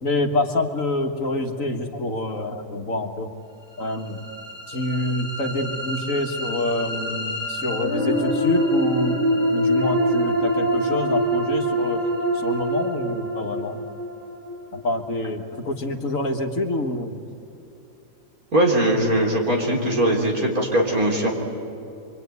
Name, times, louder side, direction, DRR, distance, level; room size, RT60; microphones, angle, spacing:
voice 1, 0.0-3.3 3.8-4.2 4.7-9.2 9.5-12.1 12.3-13.8 14.7-17.2, left 2 dB, 55° left, 5 dB, 1.9 m, -26 dB
sound 1, 3.8-15.9, equal, 30° right, 8.0 m, -25 dB
voice 2, 18.5-21.3, right 1 dB, 60° right, 0 dB, 4.4 m, -20 dB
25.5 x 24.5 x 9.5 m, 2.7 s
omnidirectional pair, 1.7 m